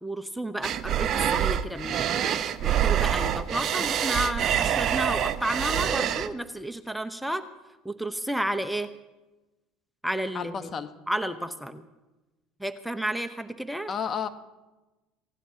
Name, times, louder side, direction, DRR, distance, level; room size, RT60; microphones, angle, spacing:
voice 1, 0.0-2.3 2.6-7.4 7.8-8.9 10.0-10.7 11.1-11.9 12.6-13.9, right 1 dB, ahead, 8 dB, 0.9 m, -31 dB
sound 1, 0.6-6.3, right 9 dB, 50° right, 0.8 m, -26 dB
voice 2, 10.3-10.9 13.9-14.3, left 7 dB, 35° left, 9 dB, 1.2 m, -31 dB
28.5 x 17.0 x 2.9 m, 1.1 s
hypercardioid pair, 80°, 0 cm